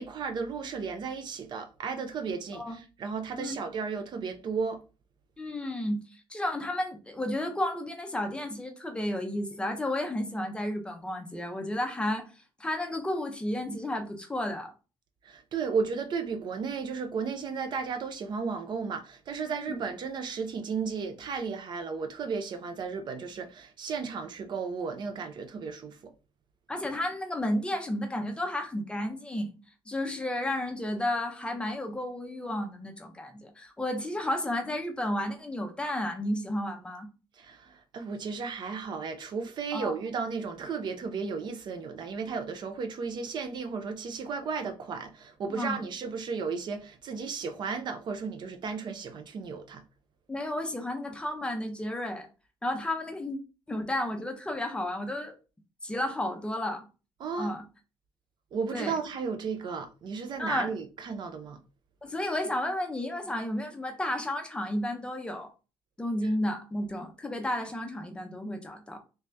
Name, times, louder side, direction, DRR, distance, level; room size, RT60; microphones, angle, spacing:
voice 1, 0.0-4.8 15.2-26.1 37.3-49.8 57.2-57.5 58.5-61.6 66.2-66.3, right 5 dB, 50° right, 0.5 m, -34 dB
voice 2, 5.4-14.7 19.7-19.8 26.7-29.5 29.9-37.1 39.7-40.0 45.5-45.9 50.3-52.3 52.6-53.4 53.7-55.4 55.8-56.8 57.4-57.6 58.7-58.9 60.4-60.7 62.0-65.5 66.0-69.0, left 1 dB, 10° left, 0.6 m, -32 dB
3.3 x 2.7 x 3.3 m
cardioid pair, 155°, 10 cm